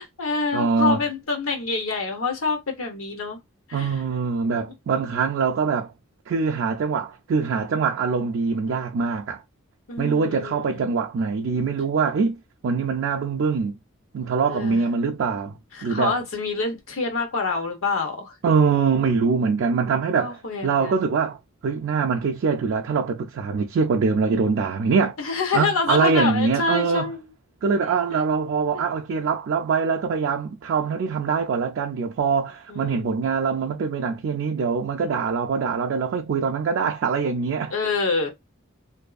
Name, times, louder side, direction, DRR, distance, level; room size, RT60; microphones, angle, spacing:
voice 1, 0.0-3.4 3.7-4.0 5.0-5.2 9.9-10.9 14.5-14.8 15.7-18.3 20.2-20.9 25.2-27.3 27.8-28.2 32.7-33.3 37.7-38.3, left 4 dB, 85° left, 0.8 m, -27 dB
voice 2, 0.5-1.0 3.7-5.9 6.3-9.4 10.0-13.8 14.1-15.5 15.8-16.2 18.4-20.4 20.6-21.4 21.6-25.1 25.5-27.1 27.6-37.7, right 5 dB, 60° right, 0.3 m, -23 dB
2.6 x 2.3 x 2.4 m
head